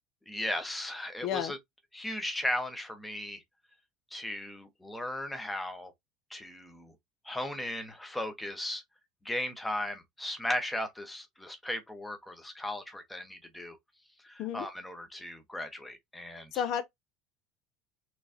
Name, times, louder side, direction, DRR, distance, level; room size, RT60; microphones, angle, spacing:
voice 1, 0.3-1.6 1.9-3.4 4.1-5.9 6.3-6.9 7.2-8.8 9.2-13.8 14.2-16.5, left 1 dB, 5° left, 0.9 m, -36 dB
voice 2, 1.2-1.5 14.4-14.7 16.5-16.8, left 9 dB, 45° left, 0.5 m, -31 dB
5.9 x 3.2 x 2.6 m
cardioid pair, 160°, 0 cm